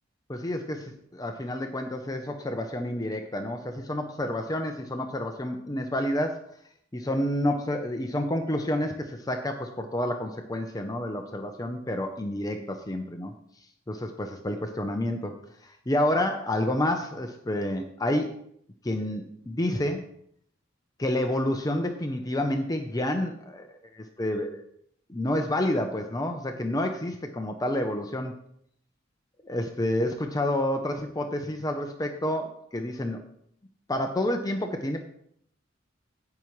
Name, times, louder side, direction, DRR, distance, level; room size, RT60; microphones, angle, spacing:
voice 1, 0.3-6.4 6.9-13.3 13.9-18.3 18.8-20.0 21.0-23.7 23.9-24.6 25.1-28.3 29.5-33.2 33.9-35.0, left 1 dB, 20° left, 5 dB, 0.7 m, -29 dB
16.0 x 5.9 x 3.2 m, 0.69 s
head